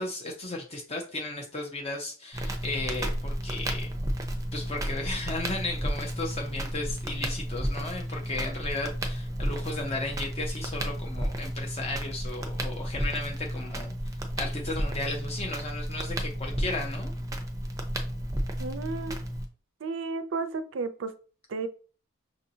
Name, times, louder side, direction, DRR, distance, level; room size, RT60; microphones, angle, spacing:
voice 1, 0.0-3.9 4.5-13.9 14.4-17.1, left 2 dB, 30° left, 1 dB, 0.6 m, -35 dB
Crackle, 2.3-19.4, equal, 15° right, 0.5 m, -32 dB
voice 2, 18.6-19.2 19.8-21.1 21.5-21.7, right 4 dB, 65° right, 11 dB, 0.4 m, -33 dB
6.0 x 2.7 x 2.7 m, 0.40 s
head